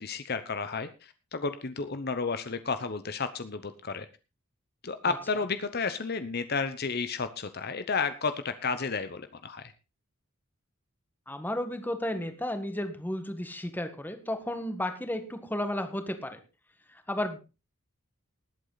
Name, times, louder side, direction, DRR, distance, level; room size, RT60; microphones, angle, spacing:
voice 1, 0.0-4.1 4.8-9.7, left 4 dB, 50° left, 11 dB, 0.9 m, -32 dB
voice 2, 11.3-16.4 16.9-17.4, left 1 dB, 10° left, 8 dB, 1.7 m, -33 dB
19.5 x 8.4 x 4.0 m, 0.31 s
head